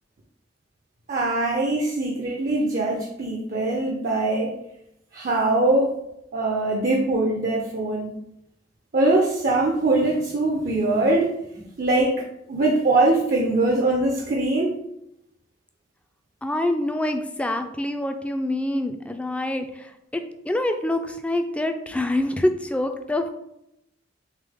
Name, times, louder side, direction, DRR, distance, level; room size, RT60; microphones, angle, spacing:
voice 1, 1.1-4.6 5.1-5.9 6.3-8.1 8.9-11.3 11.8-12.2 12.5-14.8, right 2 dB, 50° right, 0 dB, 0.5 m, -22 dB
voice 2, 16.4-19.7 20.1-23.3, left 1 dB, 5° left, 6 dB, 0.3 m, -25 dB
3.7 x 3.2 x 3.5 m, 0.81 s
head